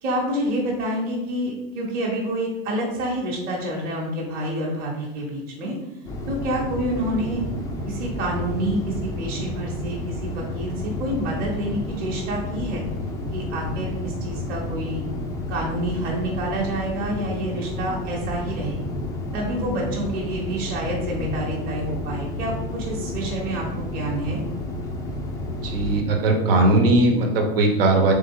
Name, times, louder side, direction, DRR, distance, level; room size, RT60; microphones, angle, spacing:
voice 1, 0.0-5.7 6.3-7.4 7.9-12.8 13.3-15.1 15.5-18.9 19.3-24.4, right 1 dB, 30° right, -2 dB, 1.1 m, -28 dB
sound 1, 6.0-26.0, left 1 dB, 10° left, 0.4 m, -31 dB
voice 2, 25.6-28.1, right 2 dB, 75° right, 3 dB, 1.1 m, -19 dB
3.6 x 3.4 x 3.6 m, 0.96 s
supercardioid pair, 140°, 29 cm